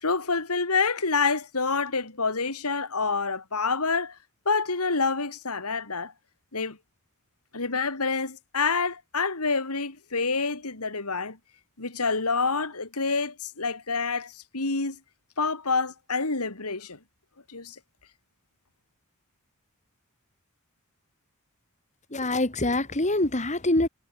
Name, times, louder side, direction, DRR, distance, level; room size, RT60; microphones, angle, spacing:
voice 1, 0.0-4.2 4.4-6.1 6.5-6.8 7.5-11.4 11.8-15.0 15.4-17.0 17.5-17.8, left 4 dB, 80° left, 2.9 m, -27 dB
voice 2, 22.1-23.9, left 2 dB, 30° left, 2.5 m, -25 dB
head